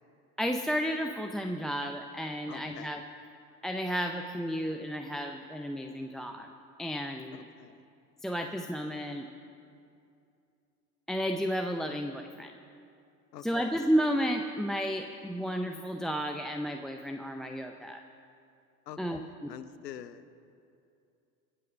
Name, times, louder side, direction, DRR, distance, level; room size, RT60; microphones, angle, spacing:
voice 1, 0.4-3.0 3.6-6.5 6.8-7.4 8.2-9.3 11.1-12.5 13.4-18.0 19.0-19.5, equal, ahead, 5 dB, 0.4 m, -32 dB
voice 2, 2.5-2.9 7.3-7.9 13.3-13.7 18.9-20.3, left 10 dB, 85° left, 13 dB, 0.8 m, -46 dB
22.0 x 7.9 x 6.1 m, 2.5 s
hypercardioid pair, 80°, 48 cm